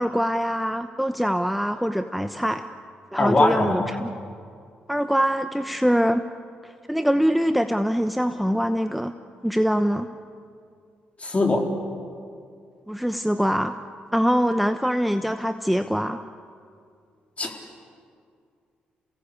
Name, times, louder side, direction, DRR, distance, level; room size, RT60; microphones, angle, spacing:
voice 1, 0.0-2.7 3.1-4.1 4.9-6.2 6.6-9.1 9.4-10.1 12.9-13.8 14.1-16.2, equal, ahead, 8 dB, 1.0 m, -23 dB
voice 2, 3.2-3.9 11.2-11.7 17.4-17.6, left 2 dB, 35° left, 2 dB, 4.3 m, -21 dB
28.0 x 18.0 x 8.5 m, 2.3 s
hypercardioid pair, 50°, 4 cm